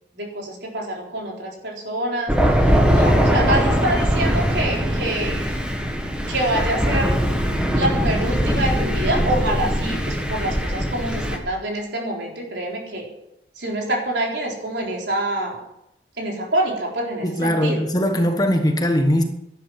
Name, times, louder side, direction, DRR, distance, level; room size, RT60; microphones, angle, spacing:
voice 1, 0.1-5.5 6.3-7.1 7.7-13.1 13.6-15.6 16.2-17.8, right 1 dB, 70° right, 4.1 m, -26 dB
Thunder, 2.3-11.4, equal, 5° right, 1.6 m, -21 dB
voice 2, 17.2-19.2, equal, 20° left, 1.4 m, -20 dB
12.0 x 11.5 x 7.5 m
head